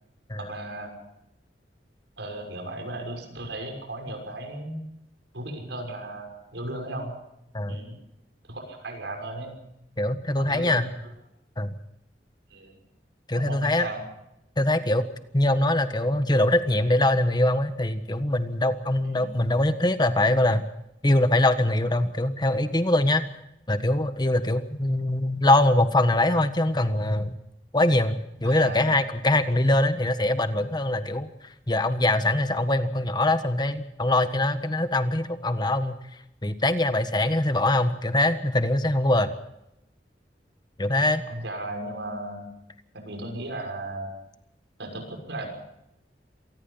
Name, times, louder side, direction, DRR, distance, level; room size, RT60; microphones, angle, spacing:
voice 1, 0.4-0.9 2.2-4.8 5.3-7.1 7.7-8.0 8.5-9.6 10.4-10.9 12.5-12.8 13.3-14.0 19.0-19.3 28.4-28.8 41.3-42.5 42.9-44.1 44.8-45.5, right 1 dB, 85° right, 3 dB, 6.3 m, -35 dB
voice 2, 10.0-10.9 11.6-11.7 13.3-13.9 14.6-20.6 21.0-23.3 23.7-27.4 27.7-31.3 31.7-35.9 36.4-39.3 40.8-41.3, left 1 dB, 25° left, 10 dB, 1.5 m, -23 dB
26.5 x 19.5 x 5.7 m, 0.84 s
head